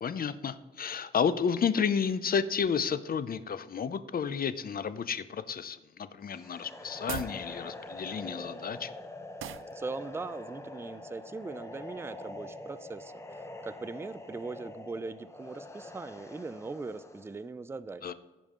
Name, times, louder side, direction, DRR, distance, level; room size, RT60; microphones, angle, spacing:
voice 1, 0.0-8.9 18.0-18.1, left 6 dB, 45° left, 14 dB, 0.5 m, -31 dB
sound 1, 6.3-17.4, left 2 dB, 15° left, 0.8 m, -45 dB
sound 2, 6.9-7.4 9.4-9.7, right 11 dB, 80° right, 0.4 m, -38 dB
voice 2, 9.7-18.1, right 3 dB, 10° right, 14 dB, 0.3 m, -40 dB
15.0 x 5.3 x 3.7 m, 1.3 s
wide cardioid pair, 120°, 21 cm